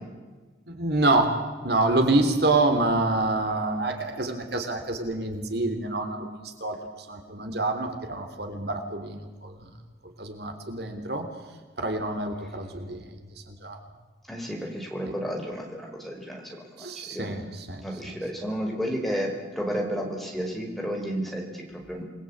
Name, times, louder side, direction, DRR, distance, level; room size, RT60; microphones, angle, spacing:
voice 1, 0.7-1.3 1.6-6.8 7.1-9.7 10.2-11.3 11.8-13.1 13.5-13.8 16.8-17.8, right 2 dB, 60° right, 6 dB, 3.3 m, -27 dB
voice 2, 14.3-17.4 17.8-22.0, equal, ahead, 0 dB, 5.0 m, -32 dB
28.5 x 21.0 x 8.7 m, 1.3 s
head